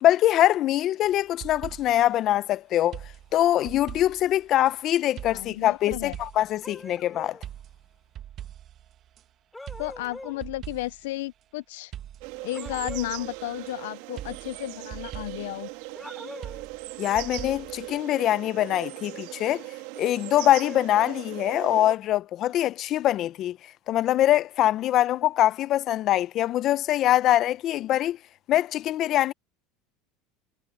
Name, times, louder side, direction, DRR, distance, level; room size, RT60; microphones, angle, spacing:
voice 1, 0.0-3.0 3.3-7.4 17.0-19.6 20.0-23.6 23.9-28.2 28.5-29.3, left 13 dB, 45° left, 0.8 m, -23 dB
sound 1, 1.0-2.1 2.9-4.7 5.2-6.6 7.4-9.2 9.7-11.1 11.9-13.7 14.2-15.6 16.4-18.0, right 11 dB, 45° right, 1.6 m, -42 dB
voice 2, 5.3-6.2 9.8-11.9 12.4-15.7, left 18 dB, 80° left, 0.4 m, -33 dB
sound 2, 6.6-7.4 9.5-10.4 12.5-13.2 15.9-16.7 20.3-20.9, left 2 dB, 5° left, 7.2 m, -42 dB
sound 3, 12.2-22.0, right 24 dB, 70° right, 2.0 m, -39 dB
supercardioid pair, 115°, 0 cm